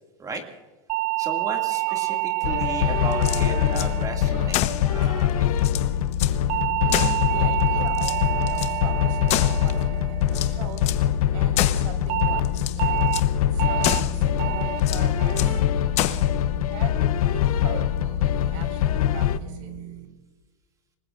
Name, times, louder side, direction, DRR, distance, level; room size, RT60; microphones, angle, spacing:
sound 1, 0.9-5.4 6.5-11.0 12.1-12.4 12.8-13.2 13.6-14.0 14.4-14.8 15.2-15.6 16.0-16.4, right 21 dB, 45° right, 0.8 m, -29 dB
voice 1, 1.2-5.7, right 2 dB, 20° right, 4 dB, 2.2 m, -35 dB
voice 2, 1.9-2.5 2.9-3.7 4.3-4.5 6.8-20.1, right 6 dB, 65° right, 7 dB, 4.7 m, -41 dB
sound 2, 2.4-19.4, left 10 dB, 80° left, 0.8 m, -23 dB
sound 3, 3.1-3.9 4.5-4.9 5.3-5.4 5.6-6.4 6.9-7.6 7.9-8.7 9.3-9.9 10.3-11.1 11.6-11.9 12.4-12.8 13.1-13.3 13.8-14.2 14.8-15.6 16.0-16.3, left 13 dB, 35° left, 1.0 m, -28 dB
26.5 x 20.5 x 2.5 m, 1.3 s
supercardioid pair, 140°, 18 cm